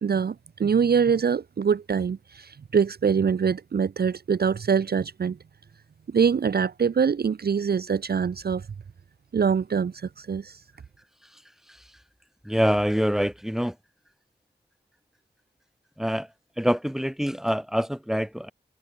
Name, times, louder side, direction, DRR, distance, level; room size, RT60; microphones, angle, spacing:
voice 1, 0.0-5.4 6.1-8.7 9.3-10.6, right 6 dB, 60° right, 0.6 m, -24 dB
voice 2, 12.4-13.8 16.0-16.3 16.6-18.5, equal, ahead, 3.8 m, -25 dB
cardioid pair, 40°, 18 cm